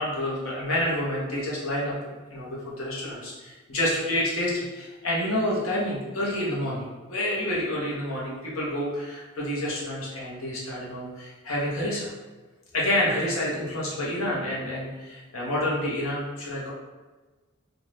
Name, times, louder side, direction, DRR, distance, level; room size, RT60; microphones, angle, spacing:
voice 1, 0.0-12.1 12.7-16.7, left 1 dB, 80° left, -5 dB, 0.9 m, -28 dB
2.6 x 2.3 x 3.3 m, 1.3 s
head